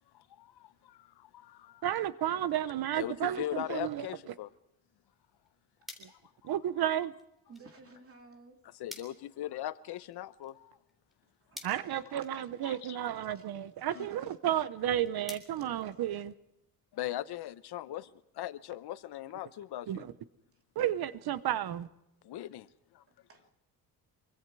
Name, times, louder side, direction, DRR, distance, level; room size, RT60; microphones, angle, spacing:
voice 1, 0.1-1.8 3.0-4.5 6.1-6.2 8.7-10.8 12.6-13.0 13.9-14.1 16.9-20.1 22.2-23.0, left 13 dB, 90° left, 1.0 m, -40 dB
voice 2, 1.8-4.1 6.0-6.1 6.4-7.1 11.6-16.3 19.9-20.1 20.7-21.9, right 11 dB, 75° right, 1.0 m, -32 dB
sound 1, 5.3-16.6, left 1 dB, ahead, 3.4 m, -55 dB
voice 3, 7.5-8.6 11.5-11.6 11.8-12.5 13.3-13.4 13.7-14.4 15.6-15.9 23.1-23.5, right 3 dB, 35° right, 2.7 m, -55 dB
25.0 x 24.5 x 4.8 m
cardioid pair, 160°, 38 cm